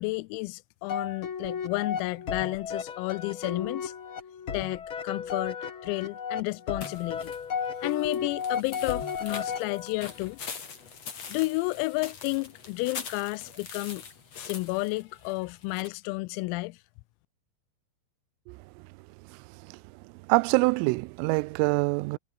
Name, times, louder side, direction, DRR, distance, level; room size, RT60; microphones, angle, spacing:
voice 1, 0.0-3.9 4.5-5.6 5.8-7.3 7.8-10.4 11.3-14.0 14.4-16.8, left 23 dB, 90° left, 3.4 m, -31 dB
sound 1, 0.9-10.2, left 7 dB, 70° left, 1.2 m, -34 dB
sound 2, 6.8-15.9, left 6 dB, 35° left, 3.8 m, -43 dB
voice 2, 20.3-22.2, right 26 dB, 85° right, 3.1 m, -24 dB
omnidirectional pair, 6.0 m